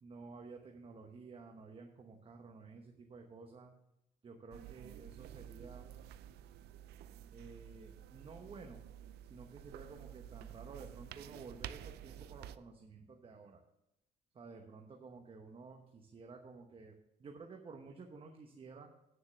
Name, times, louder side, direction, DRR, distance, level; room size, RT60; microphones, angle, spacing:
voice 1, 0.0-3.7 4.2-5.9 7.3-8.8 9.3-13.6 14.3-18.9, right 4 dB, 35° right, 3 dB, 1.1 m, -52 dB
sound 1, 4.5-12.6, right 11 dB, 75° right, 0.5 m, -51 dB
9.2 x 6.6 x 6.8 m, 0.83 s
cardioid pair, 110°, 17 cm